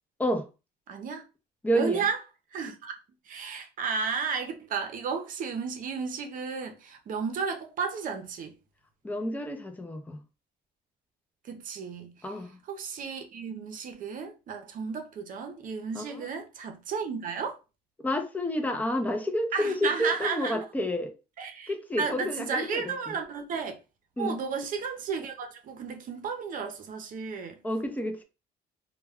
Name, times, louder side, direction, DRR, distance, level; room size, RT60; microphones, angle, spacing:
voice 1, 0.9-1.2 1.7-2.2 2.5-2.9 3.3-8.6 11.4-12.4 12.7-17.6 19.5-20.6 21.4-23.8 24.2-27.6, right 5 dB, 55° right, 0.6 m, -33 dB
voice 2, 1.6-2.0 9.0-10.2 12.2-12.6 15.9-16.2 18.0-21.1 21.7-23.1 24.2-24.4 27.6-28.2, equal, 10° left, 0.5 m, -30 dB
2.2 x 2.2 x 3.4 m
cardioid pair, 110°, 17 cm